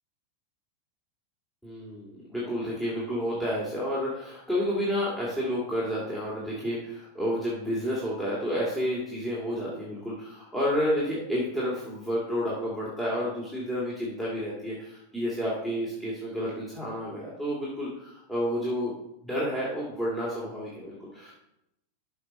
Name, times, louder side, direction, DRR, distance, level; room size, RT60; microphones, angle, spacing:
voice 1, 1.6-18.9 19.2-21.3, equal, 5° left, -7 dB, 2.4 m, -30 dB
13.0 x 4.8 x 5.2 m, 0.84 s
figure-of-eight pair, 90°, 0 cm